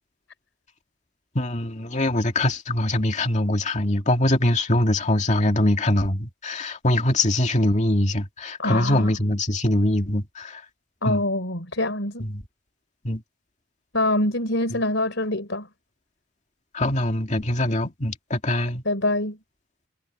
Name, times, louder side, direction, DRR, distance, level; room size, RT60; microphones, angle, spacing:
voice 1, 1.3-10.6 11.0-11.2 12.2-12.4 13.0-13.2 14.7-14.8 16.7-18.8, left 1 dB, 35° left, 2.3 m, -23 dB
voice 2, 8.6-9.1 11.0-12.3 13.9-15.7 18.9-19.4, left 1 dB, 65° left, 5.1 m, -25 dB
head